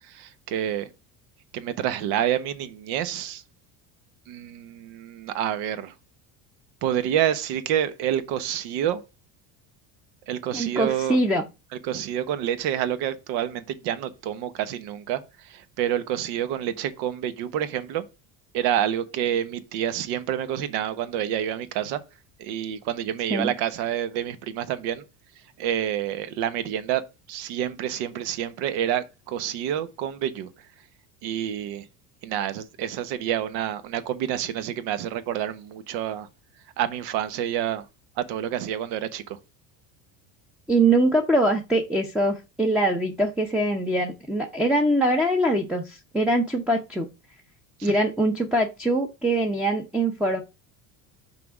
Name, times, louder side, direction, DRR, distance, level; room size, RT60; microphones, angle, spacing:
voice 1, 0.1-0.9 1.5-3.4 4.3-5.9 6.8-9.0 10.3-11.2 11.8-18.0 18.5-22.0 22.4-25.0 25.6-30.5 31.2-31.9 32.2-36.3 36.8-37.8 38.2-39.4 47.8-47.9, right 10 dB, 75° right, 1.0 m, -28 dB
voice 2, 10.5-11.4 23.3-23.5 40.7-47.1 47.8-50.4, right 1 dB, ahead, 0.6 m, -23 dB
6.0 x 3.6 x 5.9 m
cardioid pair, 140°, 43 cm